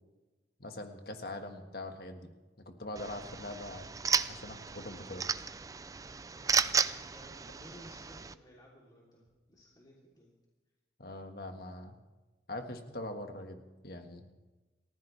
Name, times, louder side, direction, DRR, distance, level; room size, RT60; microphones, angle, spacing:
voice 1, 0.6-2.3 2.6-3.9 4.3-5.2 11.0-12.0 12.5-14.2, left 1 dB, 60° left, 5 dB, 1.6 m, -42 dB
sound 1, 3.0-8.3, right 5 dB, 20° right, 0.4 m, -34 dB
voice 2, 7.1-10.3, equal, 25° left, -5 dB, 3.1 m, -56 dB
29.0 x 14.5 x 3.4 m, 1.2 s
head